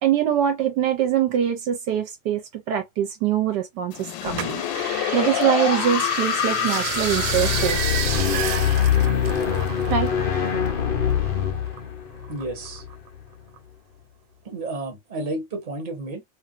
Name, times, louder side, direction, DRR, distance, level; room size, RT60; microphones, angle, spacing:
voice 1, 0.0-4.6 5.1-7.9 9.9-10.1, right 10 dB, 70° right, 1.2 m, -23 dB
sound 1, 3.9-10.8, left 11 dB, 85° left, 1.3 m, -28 dB
sound 2, 4.4-10.2 10.5-11.8 12.2-13.1 13.6-13.7, right 9 dB, 90° right, 1.3 m, -31 dB
sound 3, 6.9-13.2, left 8 dB, 65° left, 0.5 m, -24 dB
voice 2, 12.3-12.9 14.4-16.2, right 2 dB, 30° right, 1.0 m, -31 dB
2.9 x 2.6 x 2.4 m
omnidirectional pair, 2.0 m